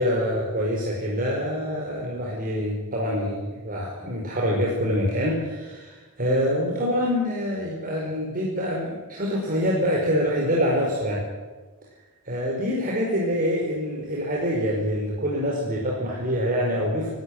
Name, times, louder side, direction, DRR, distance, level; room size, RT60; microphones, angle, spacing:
voice 1, 0.0-11.2 12.2-17.1, equal, 40° right, -2 dB, 5.0 m, -25 dB
28.0 x 13.0 x 9.6 m, 1.3 s
head